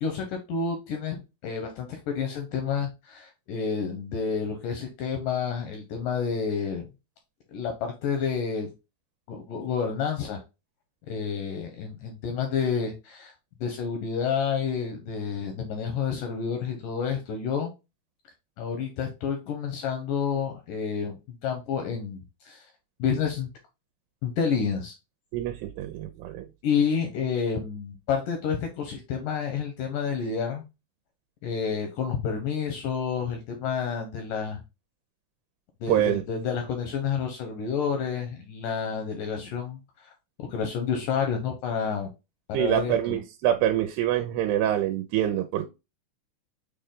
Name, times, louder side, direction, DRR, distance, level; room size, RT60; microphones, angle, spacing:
voice 1, 0.0-6.8 7.5-8.7 9.3-10.4 11.1-13.3 13.6-17.7 18.6-21.2 21.4-22.7 23.0-23.5 24.2-24.9 26.6-30.6 31.4-34.6 35.8-39.8 40.4-42.1 42.5-43.2, left 6 dB, 80° left, 4 dB, 1.9 m, -29 dB
voice 2, 25.3-26.5 35.9-36.2 42.5-45.7, right 11 dB, 85° right, 6 dB, 2.6 m, -25 dB
6.4 x 2.2 x 3.6 m, 0.26 s
omnidirectional pair, 4.6 m